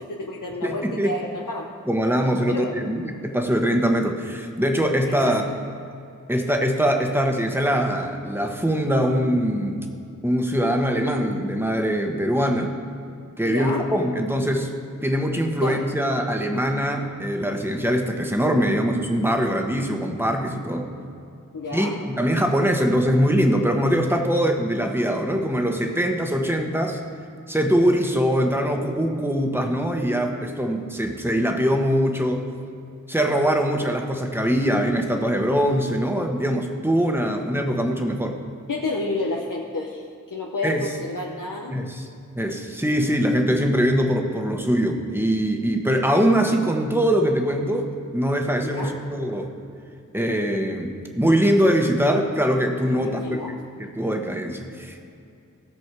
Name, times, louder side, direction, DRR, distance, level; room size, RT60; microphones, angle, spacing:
voice 1, 0.0-1.7 2.5-2.8 5.0-5.6 13.4-13.9 15.6-15.8 21.5-22.0 38.7-41.8 48.6-49.0 52.9-53.6, left 2 dB, 80° left, -1 dB, 0.9 m, -30 dB
voice 2, 0.6-1.1 1.9-5.4 6.3-9.8 10.2-12.8 13.4-14.7 15.0-20.9 21.7-27.0 27.5-32.5 33.1-38.4 40.6-40.9 41.7-42.1 42.3-49.5 50.1-53.4 54.0-55.0, equal, 5° right, 3 dB, 1.2 m, -22 dB
16.5 x 6.2 x 4.8 m, 2.5 s
wide cardioid pair, 55°, 31 cm